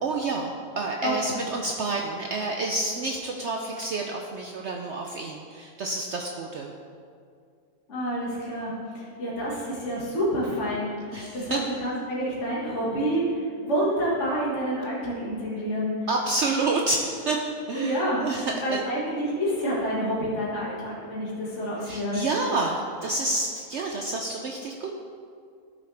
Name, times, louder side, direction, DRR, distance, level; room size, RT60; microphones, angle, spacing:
voice 1, 0.0-6.7 11.1-11.7 16.1-18.8 21.8-24.9, right 2 dB, 60° right, 1 dB, 0.8 m, -29 dB
voice 2, 1.0-1.4 7.9-10.9 11.3-16.0 17.7-18.2 18.5-22.3, equal, 50° left, -6 dB, 2.1 m, -28 dB
12.5 x 6.4 x 3.4 m, 2.3 s
omnidirectional pair, 1.6 m